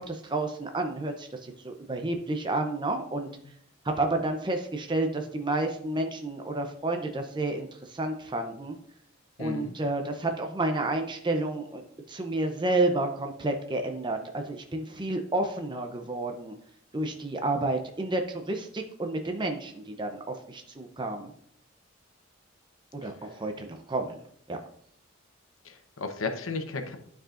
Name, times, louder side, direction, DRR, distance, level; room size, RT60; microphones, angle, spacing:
voice 1, 0.0-1.4 1.6-3.3 3.8-8.8 9.4-16.5 16.9-21.3 22.9-24.2 24.5-24.6, right 2 dB, 25° right, 4 dB, 0.6 m, -30 dB
voice 2, 9.4-9.7 23.0-23.3 25.6-27.0, left 3 dB, 80° left, 6 dB, 0.9 m, -35 dB
11.5 x 4.8 x 2.5 m, 0.68 s
head